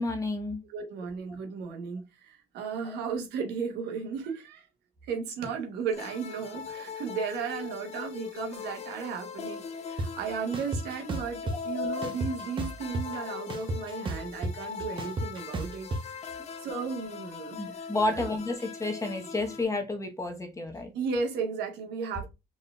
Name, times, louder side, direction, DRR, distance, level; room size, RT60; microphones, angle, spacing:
voice 1, 0.0-0.6 2.8-3.0 16.4-16.5 17.6-20.9, left 2 dB, 20° left, 1.0 m, -31 dB
voice 2, 0.7-4.6 5.1-15.9 16.6-17.6 18.0-18.3 20.9-22.3, right 6 dB, 80° right, 1.1 m, -35 dB
sound 1, 5.9-19.6, left 6 dB, 40° left, 0.6 m, -40 dB
sound 2, 10.0-10.1 10.5-11.6 12.0-13.2 13.5-16.0, right 2 dB, 30° right, 0.7 m, -32 dB
4.2 x 3.6 x 2.3 m
cardioid pair, 110°, 17 cm